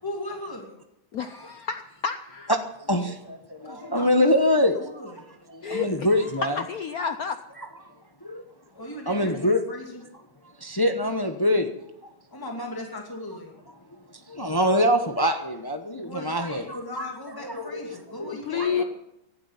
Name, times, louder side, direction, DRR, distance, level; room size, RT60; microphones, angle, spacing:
voice 1, 0.0-0.7 3.6-4.3 4.7-5.3 8.8-10.0 12.3-13.5 16.0-18.8, left 1 dB, 10° left, 2.5 m, -38 dB
voice 2, 1.1-2.5 5.6-7.3 18.3-18.8, left 6 dB, 70° left, 0.8 m, -30 dB
voice 3, 2.9-4.8 5.5-6.6 7.6-7.7 8.2-8.4 9.1-9.6 10.6-11.7 12.0-12.1 14.3-17.1 17.3-18.8, left 1 dB, 35° left, 0.3 m, -24 dB
17.5 x 12.0 x 5.7 m
omnidirectional pair, 2.3 m